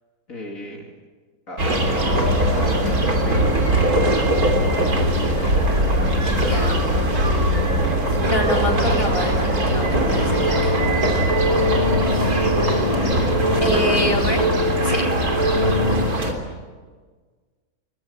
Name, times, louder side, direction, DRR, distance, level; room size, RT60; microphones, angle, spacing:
voice 1, 0.3-0.9 1.5-3.5 11.4-12.1 13.0-13.7 14.0-14.2, left 2 dB, 60° left, 0 dB, 3.1 m, -33 dB
sound 1, 1.6-16.3, right 1 dB, 70° right, 3.9 m, -20 dB
voice 2, 6.3-6.8 8.2-10.9 13.6-14.5 14.8-15.0, equal, 20° left, -1 dB, 4.1 m, -25 dB
sound 2, 9.9-16.1, left 1 dB, 20° right, 2.9 m, -24 dB
24.0 x 21.5 x 8.8 m, 1.4 s
omnidirectional pair, 1.6 m